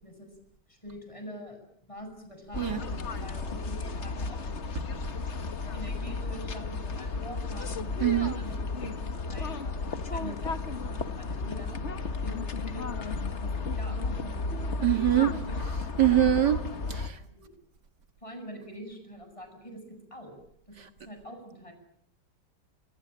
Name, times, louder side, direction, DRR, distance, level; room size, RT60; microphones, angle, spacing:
voice 1, 0.7-4.8 5.7-8.9 9.3-12.8 13.4-15.6 16.0-16.4 17.3-17.5 18.2-19.8 20.1-20.3 20.7-21.7, equal, 15° left, 7.8 m, -45 dB
sound 1, 2.5-17.1, left 4 dB, 45° left, 1.7 m, -33 dB
voice 2, 8.0-8.3 14.8-15.3 16.0-17.2 20.8-20.9, right 12 dB, 75° right, 2.3 m, -24 dB
26.5 x 26.0 x 8.8 m
omnidirectional pair, 1.8 m